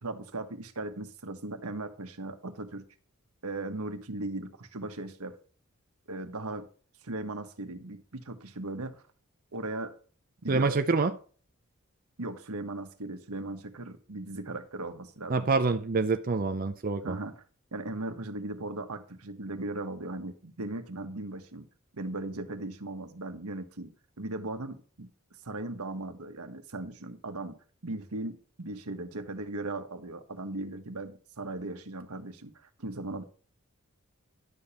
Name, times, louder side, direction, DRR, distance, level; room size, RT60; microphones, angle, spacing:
voice 1, 0.0-2.9 3.4-5.4 6.1-6.7 7.0-9.0 9.5-9.9 10.4-10.8 12.2-15.5 17.0-17.4 17.7-21.7 21.9-25.1 25.4-33.2, right 2 dB, 90° right, 1.4 m, -38 dB
voice 2, 10.5-11.1 15.3-17.2, right 3 dB, 40° right, 0.5 m, -26 dB
11.5 x 7.0 x 4.3 m
head